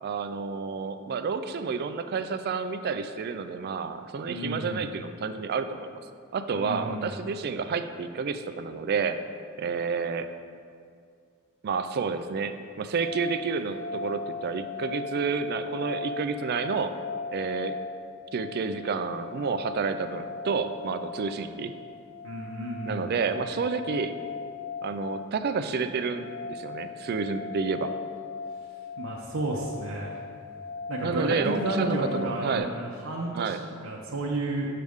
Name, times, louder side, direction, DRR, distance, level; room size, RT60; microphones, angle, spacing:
voice 1, 0.0-6.0 6.3-9.2 9.6-10.3 11.6-16.9 17.3-17.8 18.3-21.7 22.9-24.1 24.8-27.9 31.0-32.7 33.3-33.6, right 5 dB, 50° right, 9 dB, 0.3 m, -30 dB
voice 2, 4.3-4.8 6.6-7.1 22.2-23.1 29.0-30.2 30.9-34.7, right 2 dB, 85° right, -3 dB, 0.7 m, -32 dB
sound 1, 12.9-32.6, left 4 dB, 80° left, 0.5 m, -39 dB
6.6 x 6.3 x 3.5 m, 2.3 s
head